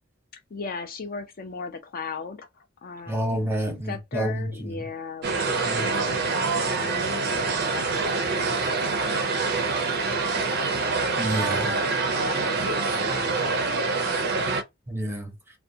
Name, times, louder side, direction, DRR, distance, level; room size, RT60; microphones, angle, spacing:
voice 1, 0.5-3.5 3.9-10.2 10.5-11.0 11.6-13.9, left 4 dB, 45° left, 0.4 m, -38 dB
voice 2, 3.1-4.8 5.6-5.9 11.2-11.7 14.9-15.3, right 1 dB, 10° right, 0.7 m, -29 dB
sound 1, 5.2-14.6, right 4 dB, 50° right, 0.4 m, -25 dB
2.6 x 2.1 x 2.6 m
head